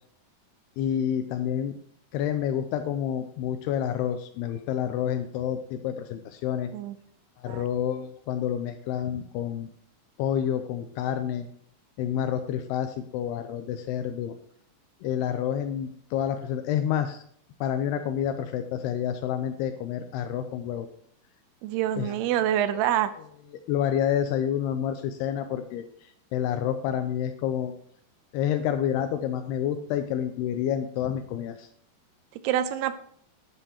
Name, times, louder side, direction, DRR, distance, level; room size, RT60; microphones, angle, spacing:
voice 1, 0.8-1.7 2.1-6.7 7.4-9.7 10.2-11.5 12.0-14.3 15.0-17.2 17.6-20.9 22.0-22.1 23.7-27.7 28.3-31.7, left 9 dB, 85° left, 7 dB, 2.6 m, -29 dB
voice 2, 21.6-23.1 32.4-32.9, right 11 dB, 85° right, 12 dB, 2.7 m, -26 dB
11.0 x 9.7 x 2.9 m, 0.65 s
omnidirectional pair, 4.6 m